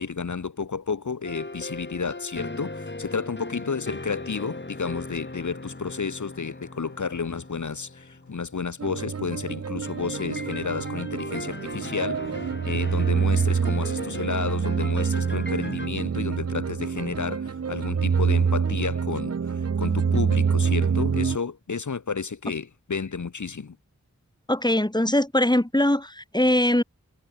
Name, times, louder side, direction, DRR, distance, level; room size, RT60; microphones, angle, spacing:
voice 1, 0.0-23.8, left 5 dB, 75° left, 1.8 m, -31 dB
sound 1, 1.2-9.0 9.9-15.9, left 2 dB, 35° left, 7.6 m, -39 dB
sound 2, 8.8-21.4, right 6 dB, 55° right, 0.8 m, -26 dB
voice 2, 24.5-26.8, left 1 dB, 15° left, 4.6 m, -21 dB
wide cardioid pair, 50°, 30 cm